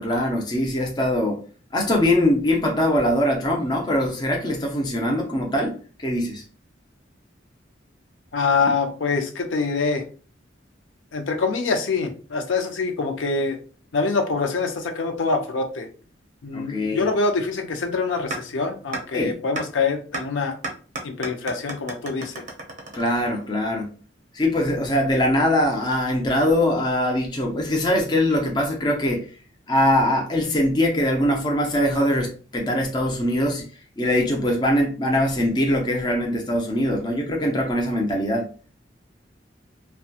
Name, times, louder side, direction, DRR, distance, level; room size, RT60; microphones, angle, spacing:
voice 1, 0.0-1.4 1.7-6.4 16.5-17.1 19.1-19.4 22.9-23.9 24.3-29.3 29.7-33.7 34.0-38.5, left 1 dB, 20° left, 0.5 m, -22 dB
voice 2, 8.3-10.0 11.1-13.6 13.9-15.9 16.4-20.6 21.0-22.3, left 4 dB, 80° left, 0.5 m, -25 dB
sound 1, 18.3-18.4 18.9-19.0 19.6-19.7 20.1-20.2 20.6-23.6, right 2 dB, 40° right, 0.6 m, -32 dB
2.6 x 2.2 x 2.4 m
head